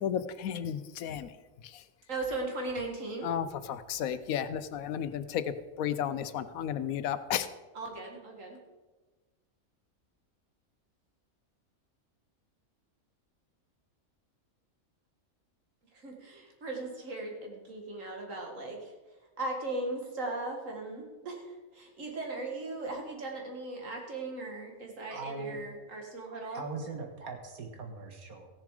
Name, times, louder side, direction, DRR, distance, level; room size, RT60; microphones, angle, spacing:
voice 1, 0.0-1.3 3.2-7.5, left 9 dB, 80° left, 13 dB, 1.1 m, -33 dB
voice 2, 2.1-3.3 7.7-8.6 15.9-18.9 19.4-26.6, right 2 dB, 65° right, 0 dB, 2.3 m, -38 dB
voice 3, 25.1-25.6 26.5-28.5, right 4 dB, 90° right, 3 dB, 2.0 m, -40 dB
15.0 x 7.1 x 4.9 m, 1.2 s
omnidirectional pair, 1.5 m